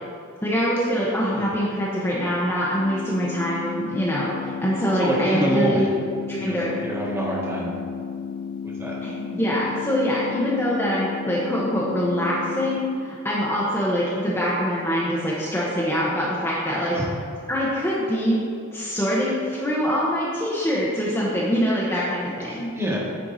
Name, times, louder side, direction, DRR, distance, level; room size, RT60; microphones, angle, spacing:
voice 1, 0.4-5.9 6.3-6.8 9.0-17.0 17.5-18.4 18.7-22.7, equal, 10° left, -7 dB, 0.9 m, -24 dB
sound 1, 2.8-12.8, left 6 dB, 80° left, 0.6 m, -33 dB
voice 2, 5.0-5.9 6.4-6.5 6.8-7.7 8.8-9.0 16.9-17.0 22.5-23.0, right 1 dB, 10° right, -5 dB, 1.4 m, -26 dB
10.0 x 4.6 x 4.0 m, 2.3 s
head